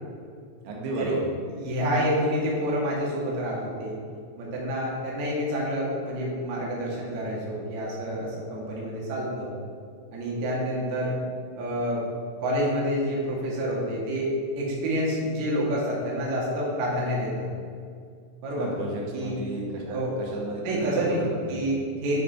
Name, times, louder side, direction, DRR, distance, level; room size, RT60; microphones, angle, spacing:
voice 1, 0.6-1.3 18.6-21.7, right 2 dB, 85° right, -2 dB, 3.6 m, -33 dB
voice 2, 1.5-4.0 4.4-9.5 10.1-11.1 11.6-12.0 12.4-17.5 18.4-18.8 19.1-19.4 19.9-20.2 20.6-21.2 21.5-22.2, equal, 50° right, -5 dB, 2.6 m, -28 dB
11.5 x 4.8 x 4.3 m, 2.2 s
omnidirectional pair, 5.2 m